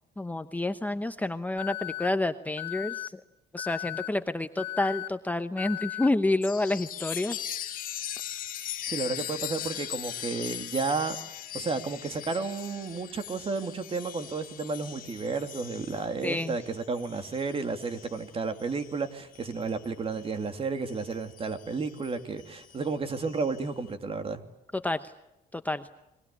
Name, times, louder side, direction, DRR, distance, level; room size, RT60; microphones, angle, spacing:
voice 1, 0.2-3.1 3.5-7.4 16.2-16.5 24.8-25.1 25.5-25.9, left 2 dB, 10° left, 9 dB, 0.9 m, -29 dB
Alarm, 1.6-2.1 2.6-3.1 3.6-4.1 4.6-5.1 5.6-6.1, left 17 dB, 85° left, 1.6 m, -36 dB
Chime, 6.4-20.4 20.9-23.7, left 11 dB, 55° left, 2.0 m, -40 dB
voice 2, 8.9-11.2 11.5-24.4, right 4 dB, 35° right, 8 dB, 2.7 m, -32 dB
30.0 x 22.5 x 8.5 m, 0.91 s
cardioid pair, 110°, 17 cm